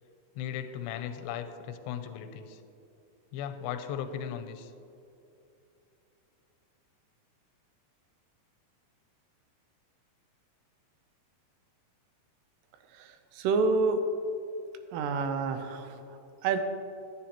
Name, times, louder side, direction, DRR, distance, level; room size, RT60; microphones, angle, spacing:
voice 1, 0.4-2.6 3.3-4.7, left 9 dB, 90° left, 8 dB, 2.7 m, -37 dB
voice 2, 12.9-14.0 14.9-16.6, right 4 dB, 85° right, 8 dB, 2.8 m, -29 dB
12.5 x 9.2 x 2.9 m, 2.7 s
omnidirectional pair, 4.8 m